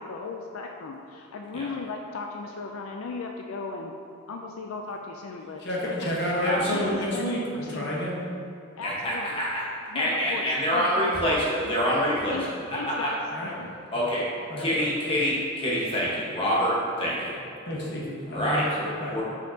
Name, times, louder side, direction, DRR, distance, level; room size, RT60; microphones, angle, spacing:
voice 1, 0.0-3.9 4.3-5.9 6.7-8.1 8.8-9.4 9.9-10.5 10.7-11.4 12.3-12.5 12.7-13.7, left 4 dB, 85° left, 2 dB, 0.4 m, -36 dB
voice 2, 5.6-8.2 13.3-13.5 14.5-15.0 17.7-18.6 19.0-19.1, left 1 dB, 55° left, -4 dB, 1.2 m, -29 dB
voice 3, 6.4-7.0 8.8-9.6 9.9-13.1 13.9-14.3 14.6-17.4 18.3-19.2, equal, 25° left, -6 dB, 1.3 m, -26 dB
6.2 x 5.6 x 2.8 m, 2.6 s
head